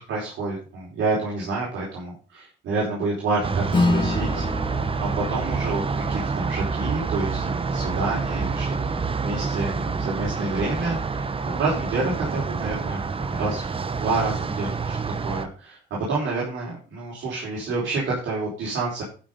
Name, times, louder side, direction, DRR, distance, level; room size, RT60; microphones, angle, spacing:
voice 1, 0.1-4.7 5.1-5.8 6.1-8.7 8.9-13.6 14.0-15.0 15.2-15.8 16.1-19.0, right 3 dB, 75° right, -5 dB, 4.4 m, -28 dB
sound 1, 3.4-15.5, right 4 dB, 25° right, 0.9 m, -27 dB
Acoustic guitar / Strum, 3.7-8.5, left 3 dB, 25° left, 2.7 m, -29 dB
12.0 x 5.9 x 5.2 m, 0.37 s
cardioid pair, 90°, 20 cm